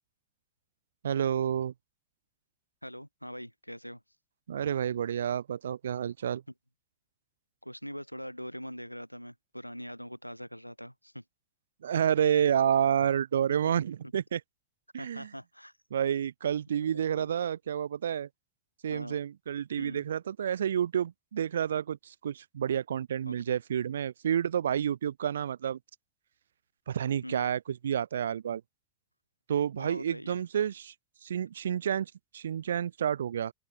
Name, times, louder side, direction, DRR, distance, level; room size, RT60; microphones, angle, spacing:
voice 1, 1.0-1.7 4.5-6.4 11.8-14.4 14.9-15.3 15.9-18.3 18.8-25.8 26.9-28.6 29.5-30.9 31.2-33.5, right 9 dB, 65° right, 0.3 m, -29 dB
voice 2, 2.8-4.0 7.6-11.2 13.7-13.8 15.0-15.7 16.8-17.3 18.9-19.2 19.8-20.0 23.2-23.4 27.2-27.5 29.8-30.4, equal, 90° left, 0.5 m, -42 dB
open air
figure-of-eight pair, 90°, 0 cm